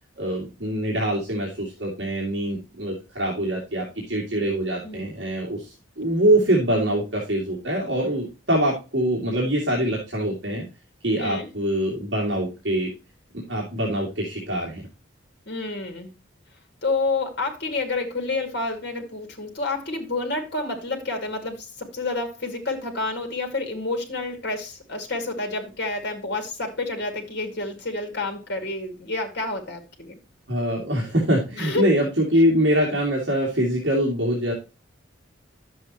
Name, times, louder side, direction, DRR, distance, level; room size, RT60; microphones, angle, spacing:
voice 1, 0.2-10.6 11.0-12.9 13.3-14.8 30.5-34.5, right 1 dB, 60° right, 2.6 m, -24 dB
voice 2, 15.5-16.1 16.8-30.2 31.6-31.9, left 3 dB, 55° left, 2.6 m, -29 dB
11.0 x 7.6 x 3.0 m
head